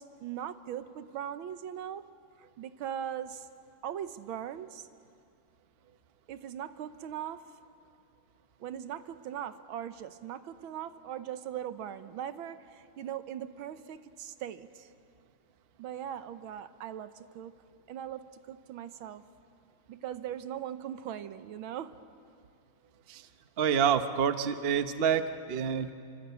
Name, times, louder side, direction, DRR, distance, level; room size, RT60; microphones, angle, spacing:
voice 1, 0.0-2.1 2.6-3.5 3.8-4.9 6.3-7.6 8.6-14.9 15.8-17.6 17.9-19.2 19.9-22.0, right 10 dB, 80° right, 12 dB, 1.7 m, -40 dB
voice 2, 23.6-25.9, right 7 dB, 45° right, 9 dB, 0.7 m, -27 dB
28.0 x 25.5 x 8.3 m, 2.4 s
omnidirectional pair, 2.2 m